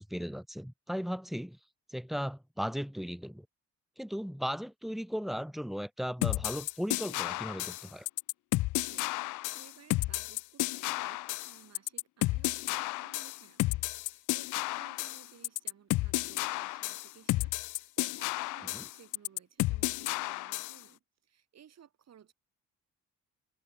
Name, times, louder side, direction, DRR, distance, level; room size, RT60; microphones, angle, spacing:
voice 1, 0.0-1.6 1.9-3.5 4.0-8.1 18.7-18.8, equal, ahead, 0.6 m, -36 dB
sound 1, 6.2-20.8, left 19 dB, 85° left, 0.6 m, -32 dB
voice 2, 9.5-22.3, right 9 dB, 60° right, 4.7 m, -58 dB
cardioid pair, 90°, 30 cm